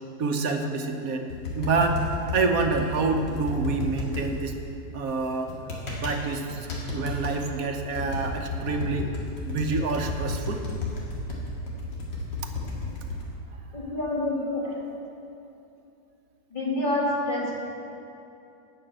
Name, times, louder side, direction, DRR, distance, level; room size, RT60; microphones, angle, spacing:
voice 1, 0.2-1.3 1.5-2.0 2.3-4.6 4.9-5.5 6.0-9.1 9.4-10.6, right 4 dB, 60° right, 4 dB, 1.3 m, -27 dB
sound 1, 1.3-4.2 5.5-6.2 6.5-7.3 7.8-13.2, left 3 dB, 90° left, 2.7 m, -32 dB
voice 2, 13.7-14.8 16.5-17.6, left 1 dB, 25° left, -5 dB, 2.3 m, -27 dB
13.0 x 5.9 x 8.9 m, 2.7 s
omnidirectional pair, 1.9 m